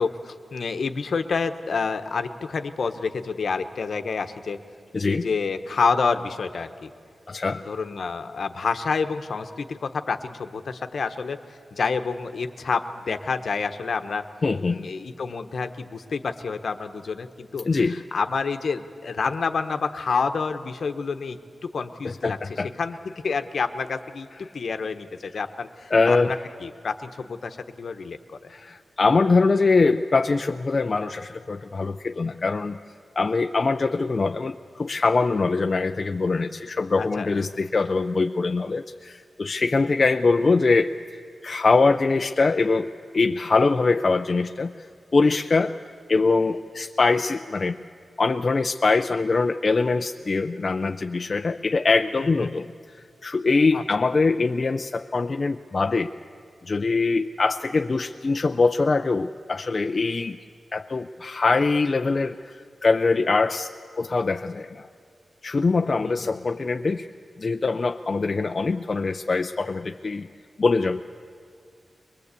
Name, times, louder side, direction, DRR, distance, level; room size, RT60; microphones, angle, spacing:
voice 1, 0.0-4.6 5.0-6.9 7.5-11.4 11.7-14.2 14.6-22.4 22.8-26.4 26.6-28.5 37.0-37.3 52.2-52.5 53.7-53.8 66.0-66.5, left 5 dB, 70° left, 8 dB, 1.1 m, -28 dB
voice 2, 4.9-5.3 7.3-7.6 14.4-14.9 17.6-18.0 22.0-22.7 25.9-26.3 28.5-32.8 33.2-41.0 41.4-45.8 46.1-47.8 48.2-52.7 52.9-56.1 56.6-60.4 60.7-63.7 64.0-64.9 65.4-67.1 67.4-70.3 70.6-71.0, left 3 dB, 50° left, 6 dB, 0.5 m, -23 dB
22.5 x 20.0 x 8.3 m, 2.2 s
cardioid pair, 65°, 0 cm